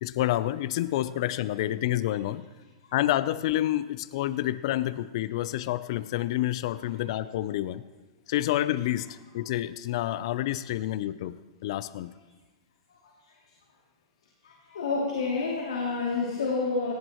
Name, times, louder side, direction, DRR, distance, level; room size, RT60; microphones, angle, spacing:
voice 1, 0.0-2.4 2.9-7.8 8.3-11.4 11.6-12.1, left 14 dB, 65° left, 16 dB, 0.5 m, -28 dB
voice 2, 14.4-16.9, left 4 dB, 90° left, -2 dB, 2.8 m, -29 dB
17.5 x 17.5 x 3.1 m, 1.2 s
hypercardioid pair, 125°, 3 cm